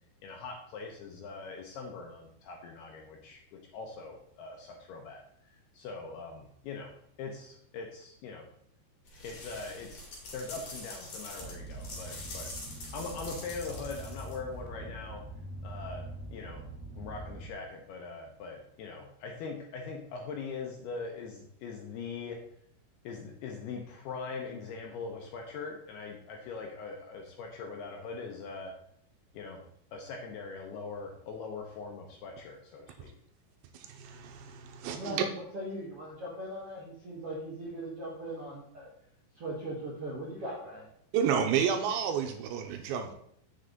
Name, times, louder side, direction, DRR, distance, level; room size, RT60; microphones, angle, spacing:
voice 1, 0.2-6.9 7.2-8.5 9.2-10.1 10.3-12.5 12.9-15.2 15.6-16.0 16.3-16.6 17.0-22.5 23.0-28.7 29.3-29.6 29.9-33.1, left 4 dB, 75° left, 1 dB, 2.4 m, -41 dB
sound 1, 9.1-14.6, left 2 dB, 45° left, 2.9 m, -45 dB
sound 2, 11.4-17.5, right 2 dB, ahead, 2.3 m, -44 dB
voice 2, 33.7-35.3 41.1-43.1, right 7 dB, 85° right, 5 dB, 2.9 m, -30 dB
voice 3, 34.8-38.9 39.3-40.9, right 1 dB, 65° right, -6 dB, 1.5 m, -39 dB
8.0 x 6.8 x 3.9 m, 0.68 s
omnidirectional pair, 5.4 m